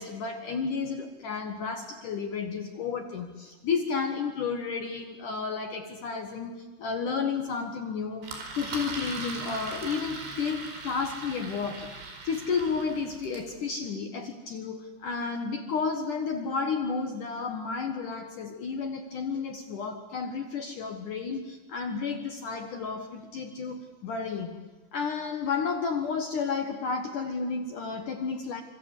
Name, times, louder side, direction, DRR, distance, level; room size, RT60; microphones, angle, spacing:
voice 1, 0.0-11.9 12.2-24.6 24.9-28.6, left 5 dB, 65° left, 5 dB, 2.1 m, -32 dB
Engine, 8.2-13.5, right 3 dB, 65° right, 6.8 m, -39 dB
27.0 x 26.5 x 8.3 m, 1.2 s
omnidirectional pair, 5.8 m